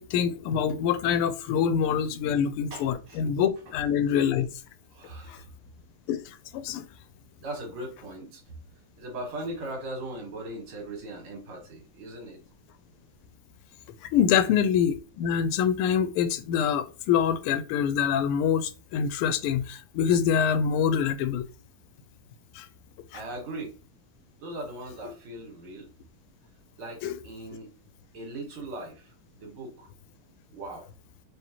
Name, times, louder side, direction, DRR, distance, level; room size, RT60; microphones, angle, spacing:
voice 1, 0.0-4.5 5.3-5.4 6.1-6.9 14.1-21.5 22.5-22.7 23.1-23.2 27.0-27.1, left 8 dB, 85° left, 1.5 m, -25 dB
voice 2, 2.7-3.2 4.9-5.4 7.4-8.4 9.0-12.4 23.1-23.8 24.4-25.9 26.8-27.7 28.1-29.9 30.5-30.9, right 1 dB, 75° right, 2.2 m, -39 dB
4.9 x 2.7 x 2.9 m
omnidirectional pair, 2.4 m